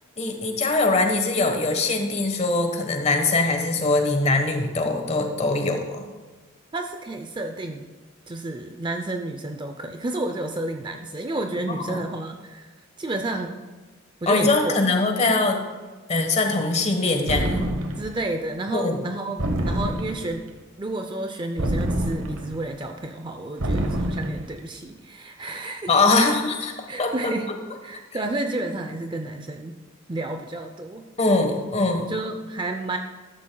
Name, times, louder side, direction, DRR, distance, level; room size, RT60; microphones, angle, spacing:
voice 1, 0.2-6.1 11.9-12.1 14.3-15.6 16.1-17.7 18.7-19.1 25.9-26.7 27.0-27.1 31.2-32.1, left 3 dB, 30° left, 4 dB, 1.3 m, -22 dB
voice 2, 6.7-7.9 8.3-12.7 13.0-13.6 14.2-14.7 18.0-26.4 26.9-27.5 27.8-29.8 30.1-31.1 32.1-33.0, right 2 dB, 25° right, 5 dB, 0.5 m, -31 dB
sound 1, 17.3-18.2 19.4-20.4 21.6-22.6 23.6-24.5, right 1 dB, 80° right, 1.0 m, -26 dB
13.5 x 12.5 x 2.3 m, 1.3 s
head